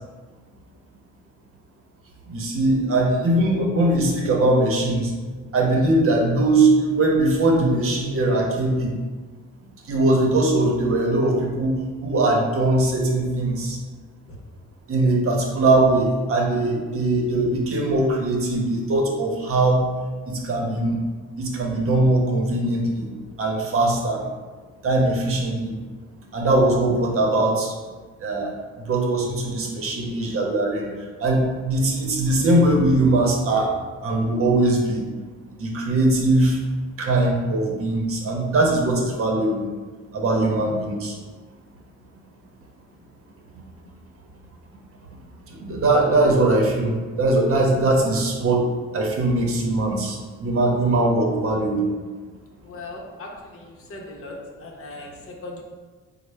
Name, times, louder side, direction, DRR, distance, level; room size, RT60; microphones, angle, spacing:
voice 1, 2.3-5.1 5.5-8.9 9.9-11.8 12.0-13.8 14.9-19.8 20.3-21.0 21.4-23.1 23.4-24.2 24.8-25.7 26.3-27.7 28.2-28.5 28.9-30.9 31.2-33.7 34.0-35.0 35.6-36.6 37.0-39.7 40.1-41.1 45.6-48.7 48.9-51.9, right 2 dB, 50° right, 0 dB, 0.9 m, -21 dB
voice 2, 52.6-55.6, left 2 dB, 45° left, -1 dB, 0.8 m, -39 dB
4.1 x 2.1 x 3.3 m, 1.4 s
cardioid pair, 90°, 30 cm